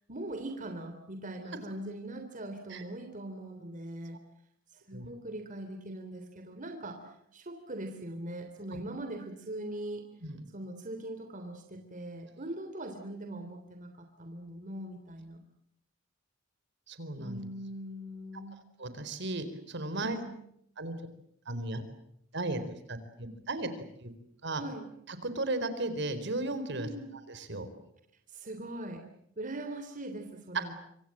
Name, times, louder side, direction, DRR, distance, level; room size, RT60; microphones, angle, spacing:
voice 1, 0.1-4.2 4.7-10.0 10.5-15.4 17.2-18.6 19.9-20.3 24.5-24.8 26.8-27.1 28.3-29.0 29.4-30.7, right 1 dB, 40° right, 5 dB, 3.3 m, -41 dB
voice 2, 16.9-17.4 18.8-20.2 20.8-20.9 21.5-21.8 22.3-22.6 22.9-23.7 24.0-24.1 24.4-24.6 25.1-26.9 27.3-27.7, right 2 dB, 60° right, 11 dB, 4.1 m, -35 dB
27.0 x 26.0 x 7.5 m, 0.74 s
head